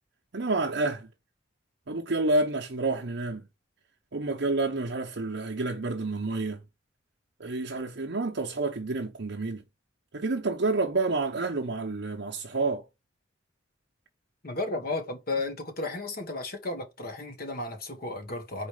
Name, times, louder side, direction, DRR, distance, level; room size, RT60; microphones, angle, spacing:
voice 1, 0.3-1.1 1.9-3.5 4.1-6.6 7.4-9.6 10.1-12.9, right 3 dB, 60° right, 0.8 m, -29 dB
voice 2, 14.4-18.7, left 2 dB, 50° left, 1.3 m, -33 dB
4.8 x 4.1 x 4.9 m
head